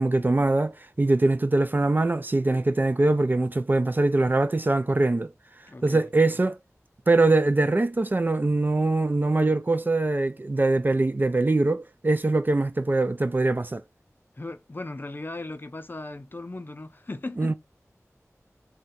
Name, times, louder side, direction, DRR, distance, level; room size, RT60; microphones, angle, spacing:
voice 1, 0.0-5.3 5.8-6.6 7.1-13.8 17.4-17.5, right 2 dB, 35° right, 0.3 m, -23 dB
voice 2, 5.7-6.0 14.4-17.5, left 2 dB, 40° left, 0.5 m, -37 dB
2.6 x 2.2 x 3.8 m
wide cardioid pair, 60°, 5 cm